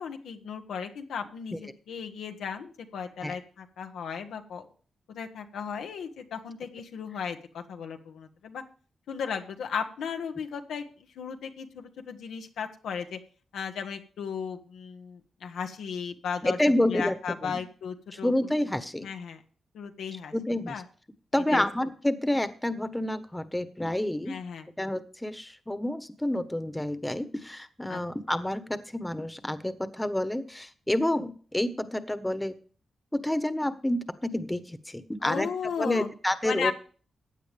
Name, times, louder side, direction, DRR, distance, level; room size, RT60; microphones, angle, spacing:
voice 1, 0.0-4.7 5.1-8.6 9.1-13.2 13.5-16.6 16.9-18.3 19.0-19.4 19.7-20.3 20.7-20.8 21.5-21.6 24.3-24.7 27.9-28.0 28.3-28.4 35.2-36.1 36.4-36.7, left 6 dB, 90° left, 5 dB, 1.3 m, -35 dB
voice 2, 16.4-17.1 17.4-17.6 18.1-19.1 20.3-20.8 21.3-24.4 24.8-32.5 33.1-35.5 35.8-36.7, left 1 dB, 10° left, 11 dB, 1.3 m, -29 dB
15.5 x 9.2 x 3.5 m, 0.41 s
cardioid pair, 55°, 0 cm